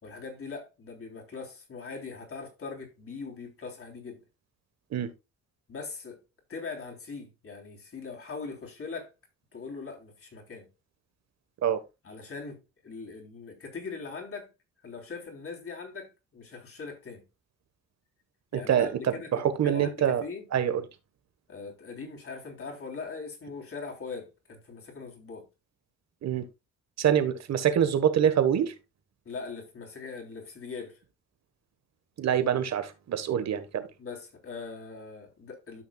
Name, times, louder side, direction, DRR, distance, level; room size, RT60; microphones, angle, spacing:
voice 1, 0.0-4.2 5.7-6.2 6.5-9.1 9.5-10.7 12.0-12.6 12.8-14.5 14.8-17.2 18.5-20.5 21.5-25.5 29.3-31.0 34.0-35.8, left 4 dB, 45° left, 3.6 m, -41 dB
voice 2, 18.5-18.9 19.3-20.2 20.5-20.8 26.2-26.4 27.0-28.7 32.2-33.9, right 9 dB, 60° right, 1.4 m, -25 dB
12.5 x 5.8 x 2.3 m
cardioid pair, 90°, 30 cm